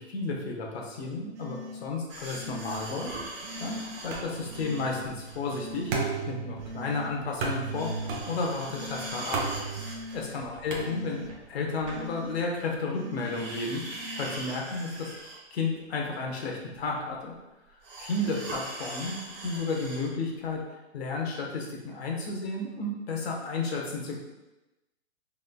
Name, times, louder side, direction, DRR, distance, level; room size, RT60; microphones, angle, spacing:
voice 1, 0.0-9.4 10.1-15.1 15.5-17.3 18.0-24.2, left 3 dB, 60° left, 0 dB, 1.2 m, -33 dB
sound 1, 1.3-1.8 2.3-2.9 3.4-4.0 4.5-5.0 5.5-6.0 6.6-7.1 7.6-8.2 8.7-9.2 9.8-10.3 10.8-11.3 11.8-12.4 12.9-13.5 13.9-14.4, left 2 dB, 70° right, 0.7 m, -42 dB
sound 2, 2.1-6.3 6.6-6.7 7.1-12.7 13.1-15.5 15.9-16.0 16.7-16.8 17.8-20.1 20.5-20.6, right 2 dB, 15° right, 0.6 m, -41 dB
sound 3, 4.1-11.5, right 4 dB, 45° right, 0.9 m, -36 dB
5.6 x 3.7 x 2.2 m, 1.0 s
hypercardioid pair, 150°, 36 cm